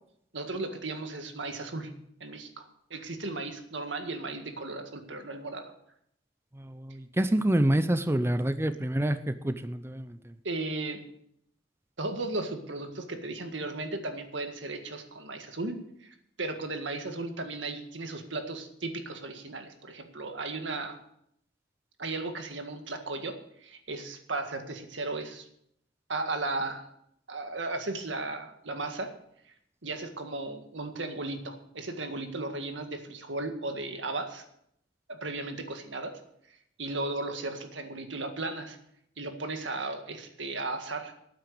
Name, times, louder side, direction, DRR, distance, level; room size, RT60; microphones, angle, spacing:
voice 1, 0.3-1.9 2.2-5.7 10.4-11.0 12.0-21.0 22.0-25.5 26.1-26.8 27.3-29.1 29.8-34.4 35.1-36.2 36.5-38.8 39.2-41.1, right 2 dB, 85° right, 6 dB, 1.8 m, -35 dB
voice 2, 6.7-10.1, right 1 dB, 15° right, 11 dB, 0.5 m, -27 dB
13.0 x 9.2 x 6.8 m, 0.73 s
head